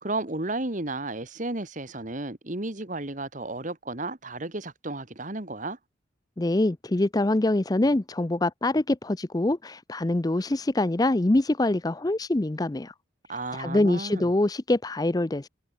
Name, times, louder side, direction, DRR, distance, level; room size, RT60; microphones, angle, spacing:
voice 1, 0.0-5.8 13.3-14.3, right 2 dB, 40° right, 1.8 m, -33 dB
voice 2, 6.4-12.9 13.5-15.5, left 2 dB, 20° left, 0.5 m, -24 dB
head